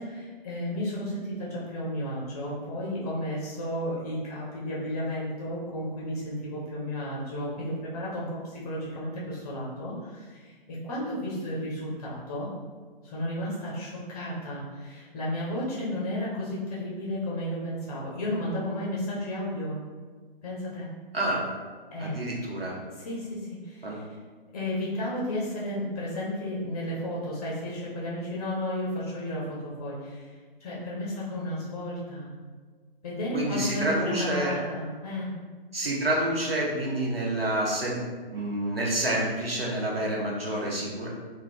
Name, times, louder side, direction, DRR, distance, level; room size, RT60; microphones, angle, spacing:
voice 1, 0.0-12.5 13.0-19.7 20.4-20.9 21.9-22.2 22.9-24.2 24.5-30.3 30.6-32.3 33.0-35.3, left 1 dB, 20° left, -6 dB, 0.6 m, -33 dB
voice 2, 22.0-22.8 23.8-24.0 33.3-34.5 35.7-38.0 38.3-41.1, right 1 dB, 80° right, -3 dB, 1.0 m, -28 dB
3.6 x 2.2 x 3.2 m, 1.5 s
figure-of-eight pair, 130°, 29 cm